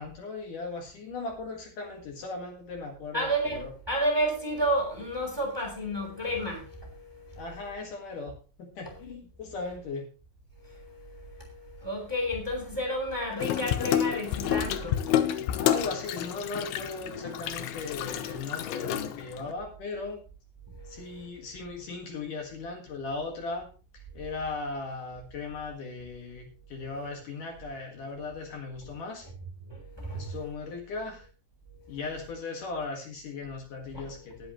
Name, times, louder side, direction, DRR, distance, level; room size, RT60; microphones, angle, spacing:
voice 1, 0.0-3.7 7.4-8.3 8.6-10.1 15.5-20.2 20.9-23.7 23.9-29.3 30.1-31.3 31.9-34.5, left 3 dB, 60° left, 3.2 m, -37 dB
voice 2, 3.1-7.4 10.6-15.6 20.7-21.3 29.7-30.4 31.9-32.0 33.9-34.1, equal, 5° right, 3.0 m, -32 dB
Water tap faucet / Sink (filling or washing), 13.4-19.5, left 11 dB, 85° left, 2.7 m, -29 dB
19.0 x 8.0 x 3.1 m
omnidirectional pair, 4.5 m